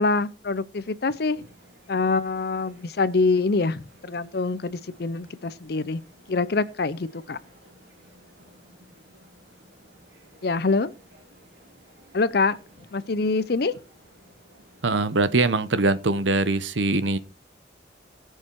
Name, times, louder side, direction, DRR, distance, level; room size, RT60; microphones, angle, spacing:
voice 1, 0.0-1.4 1.9-6.0 6.3-7.4 10.4-10.9 12.1-12.6 12.9-13.7, left 3 dB, 60° left, 0.6 m, -25 dB
sound 1, 1.0-15.8, equal, 70° right, 3.8 m, -56 dB
voice 2, 14.8-17.2, right 3 dB, 85° right, 0.9 m, -22 dB
18.0 x 6.5 x 4.6 m
head